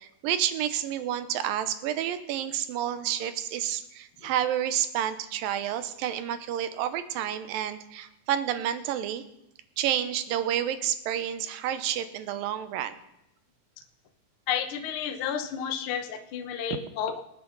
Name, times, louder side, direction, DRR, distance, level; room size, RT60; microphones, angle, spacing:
voice 1, 0.0-9.2 9.8-12.9, right 10 dB, 85° right, 11 dB, 2.6 m, -29 dB
voice 2, 14.5-17.2, left 8 dB, 75° left, 7 dB, 1.2 m, -31 dB
25.0 x 8.9 x 3.9 m, 0.85 s
omnidirectional pair, 4.0 m